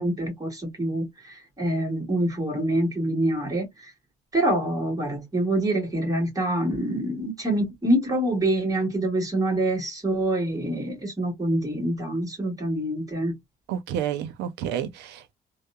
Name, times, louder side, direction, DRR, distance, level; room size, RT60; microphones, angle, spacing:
voice 1, 0.0-3.9 4.3-13.4, right 1 dB, 20° right, 1.6 m, -26 dB
voice 2, 13.7-15.3, right 9 dB, 85° right, 0.6 m, -30 dB
2.8 x 2.1 x 2.3 m
cardioid pair, 110°, 17 cm